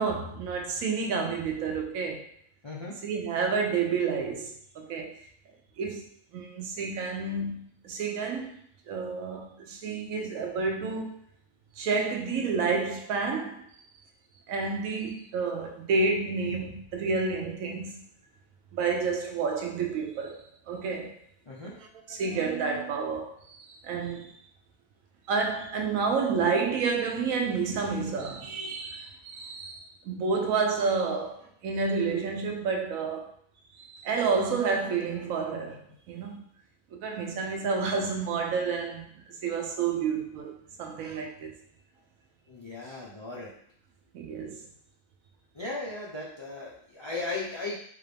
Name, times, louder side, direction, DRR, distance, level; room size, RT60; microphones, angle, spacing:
voice 1, 0.0-2.3 3.0-5.2 5.8-6.0 6.3-8.5 8.9-11.2 11.8-13.6 14.5-18.0 18.7-21.1 22.1-24.3 25.3-33.3 33.8-36.4 37.0-39.1 39.4-40.5 40.8-41.5 44.1-44.6, right 4 dB, 75° right, 1.0 m, -30 dB
voice 2, 2.6-2.9 21.5-21.7 42.5-43.5 45.5-47.8, left 3 dB, 45° left, 0.3 m, -36 dB
3.6 x 2.6 x 3.3 m
omnidirectional pair, 1.5 m